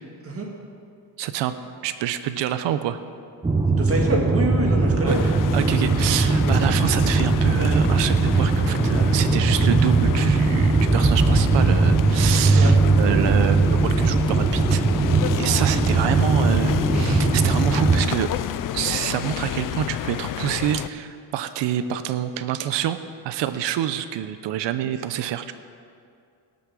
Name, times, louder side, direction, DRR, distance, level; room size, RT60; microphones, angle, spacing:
voice 1, 1.2-1.5 1.8-3.0 5.0-14.8 15.4-18.3 18.7-23.0 23.2-25.5, right 11 dB, 75° right, 11 dB, 0.7 m, -27 dB
sound 1, 3.4-18.0, right 3 dB, 10° right, 0.8 m, -19 dB
voice 2, 3.7-5.3 12.5-12.7, right 2 dB, 30° right, 0 dB, 2.0 m, -25 dB
sound 2, 5.1-20.9, left 12 dB, 50° left, 0.4 m, -30 dB
18.0 x 7.0 x 6.2 m, 2.4 s
cardioid pair, 140°, 44 cm